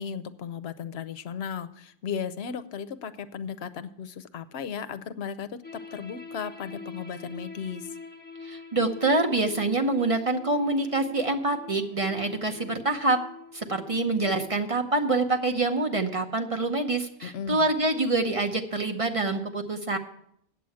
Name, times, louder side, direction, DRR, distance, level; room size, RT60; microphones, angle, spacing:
voice 1, 0.0-5.6 5.9-8.0 17.2-17.7, left 7 dB, 80° left, 11 dB, 0.9 m, -35 dB
sound 1, 5.6-14.6, left 4 dB, 10° left, 0.7 m, -45 dB
voice 2, 8.4-13.2 13.5-20.0, right 2 dB, 35° right, 5 dB, 0.9 m, -26 dB
8.7 x 7.6 x 8.4 m, 0.72 s
omnidirectional pair, 1.0 m